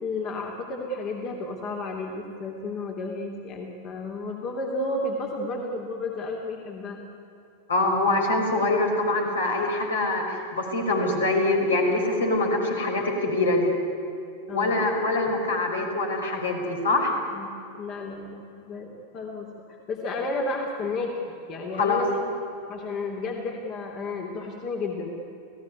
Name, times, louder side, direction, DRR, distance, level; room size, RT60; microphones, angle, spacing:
voice 1, 0.0-7.0 14.5-14.9 17.3-17.5 17.8-21.1 21.5-22.3 22.7-25.2, left 2 dB, 35° left, 0 dB, 2.9 m, -32 dB
voice 2, 7.7-13.7 14.5-17.1 21.8-22.0, left 2 dB, 70° left, 1 dB, 5.4 m, -24 dB
29.5 x 17.5 x 9.7 m, 2.8 s
figure-of-eight pair, 90°, 0 cm